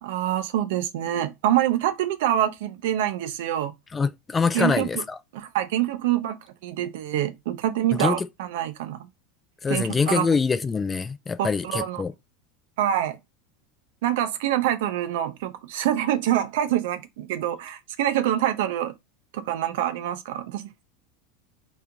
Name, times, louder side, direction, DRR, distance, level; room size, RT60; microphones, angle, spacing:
voice 1, 0.0-3.7 4.5-5.0 5.3-9.1 9.7-10.3 11.4-12.0 12.8-13.2 14.0-18.9 19.3-20.8, right 12 dB, 70° right, 0.5 m, -26 dB
voice 2, 3.9-5.2 7.9-8.3 9.6-12.1, left 5 dB, 20° left, 0.3 m, -24 dB
3.0 x 2.5 x 3.4 m
hypercardioid pair, 95°, 0 cm